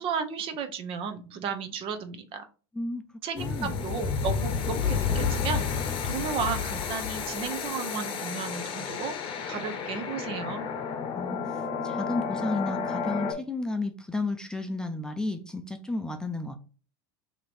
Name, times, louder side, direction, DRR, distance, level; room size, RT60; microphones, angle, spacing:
voice 1, 0.0-2.5 3.2-9.2 9.5-10.7, right 6 dB, 45° right, 8 dB, 0.8 m, -34 dB
voice 2, 3.3-3.7 11.1-11.4 11.8-16.5, left 2 dB, 5° left, 5 dB, 0.5 m, -32 dB
sound 1, 3.4-13.3, left 6 dB, 40° left, 0.8 m, -31 dB
3.0 x 2.9 x 4.1 m, 0.36 s
hypercardioid pair, 100°, 13 cm